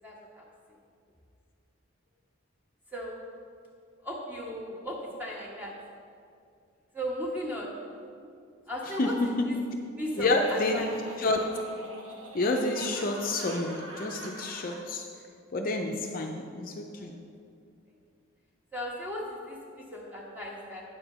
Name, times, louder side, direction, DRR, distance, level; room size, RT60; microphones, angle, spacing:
voice 1, 0.0-0.5 2.9-3.2 4.0-5.7 6.9-7.8 8.7-9.6 10.0-11.0 16.9-17.1 18.7-20.8, equal, 10° right, -4 dB, 1.3 m, -37 dB
Laughter, 10.0-14.9, right 1 dB, 70° right, 1.1 m, -44 dB
voice 2, 10.2-10.8 11.2-11.5 12.3-15.0 15.5-17.1, left 2 dB, 45° left, 2 dB, 0.5 m, -29 dB
9.3 x 4.4 x 6.6 m, 2.3 s
head